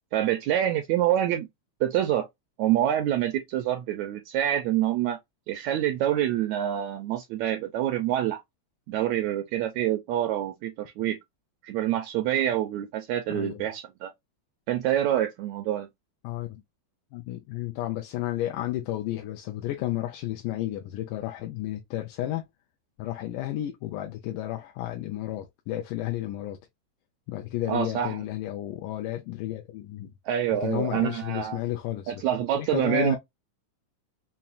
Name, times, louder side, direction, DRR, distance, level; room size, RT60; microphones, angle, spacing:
voice 1, 0.1-1.5 1.8-2.3 2.6-5.2 5.5-8.4 8.9-11.2 11.6-14.1 14.7-15.9 27.7-28.2 30.2-31.6 32.1-33.2, right 11 dB, 80° right, 1.6 m, -26 dB
voice 2, 13.3-13.6 16.2-16.6 17.1-22.4 23.0-26.6 27.3-30.1 30.6-32.2 32.6-33.2, left 14 dB, 85° left, 2.1 m, -32 dB
5.7 x 2.1 x 2.4 m
omnidirectional pair, 3.6 m